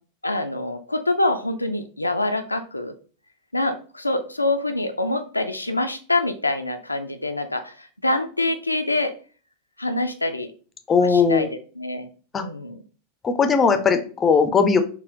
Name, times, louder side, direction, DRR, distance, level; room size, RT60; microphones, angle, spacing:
voice 1, 0.2-2.9 3.5-9.1 9.8-10.5 11.0-11.5 11.8-12.1 12.4-12.8, left 2 dB, 85° left, 7 dB, 0.3 m, -25 dB
voice 2, 10.9-11.5 12.3-12.4 13.2-14.8, left 5 dB, 20° left, 8 dB, 0.5 m, -18 dB
4.3 x 2.2 x 3.6 m, 0.39 s
figure-of-eight pair, 90°, 0 cm